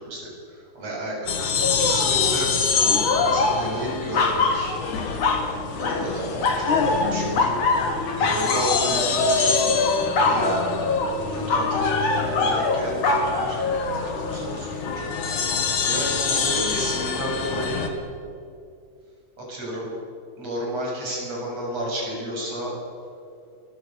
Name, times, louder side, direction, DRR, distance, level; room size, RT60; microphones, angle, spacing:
voice 1, 0.0-2.5 3.3-4.8 5.8-7.6 8.2-9.6 10.2-10.6 11.3-13.7 14.0-15.0 15.8-17.9 19.4-19.9 20.4-22.7, right 1 dB, 55° right, -2 dB, 8.8 m, -32 dB
sound 1, 1.3-17.9, left 5 dB, 80° left, 3.6 m, -27 dB
sound 2, 1.6-2.4 2.8-5.5 5.8-6.1 6.4-14.3 14.9-15.0, left 3 dB, 60° left, 3.7 m, -24 dB
27.5 x 23.0 x 6.9 m, 2.5 s
omnidirectional pair, 3.4 m